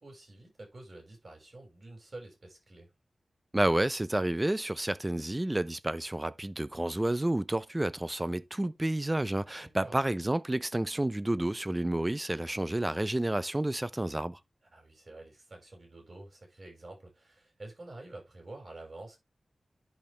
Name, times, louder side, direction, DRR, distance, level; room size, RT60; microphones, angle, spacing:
voice 1, 0.0-2.9 9.8-10.0 14.7-19.2, right 2 dB, 50° right, 5.9 m, -48 dB
voice 2, 3.5-14.4, right 1 dB, 20° right, 0.6 m, -30 dB
10.5 x 5.3 x 3.3 m
wide cardioid pair, 75°, 0 cm